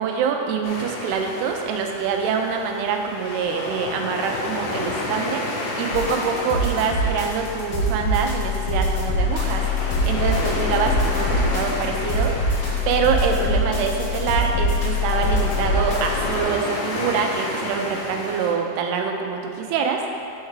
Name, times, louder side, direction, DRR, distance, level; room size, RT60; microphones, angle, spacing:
voice 1, 0.0-20.0, right 6 dB, 80° right, 3 dB, 2.5 m, -25 dB
sound 1, 0.6-18.5, left 2 dB, 85° left, 1.8 m, -31 dB
sound 2, 5.9-16.4, left 2 dB, 70° left, 1.7 m, -24 dB
6.4 x 4.7 x 4.7 m, 2.5 s
omnidirectional pair, 4.9 m